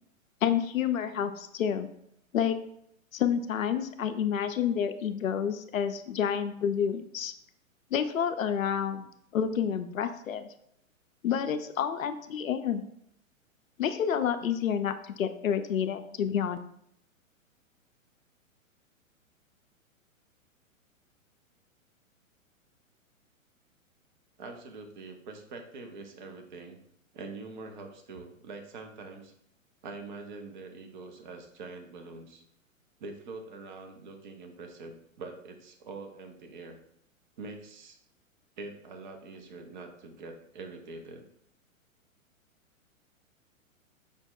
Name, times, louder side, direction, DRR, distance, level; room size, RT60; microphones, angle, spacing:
voice 1, 0.4-1.9 2.3-2.6 3.1-7.3 7.9-10.4 11.2-12.8 13.8-16.6, left 8 dB, 75° left, 9 dB, 0.5 m, -29 dB
voice 2, 24.4-26.8 27.1-29.3 29.8-32.4 33.0-36.8 37.4-38.0 38.6-41.3, right 3 dB, 35° right, 5 dB, 0.6 m, -44 dB
5.2 x 2.1 x 3.7 m, 0.72 s
figure-of-eight pair, 115°, 41 cm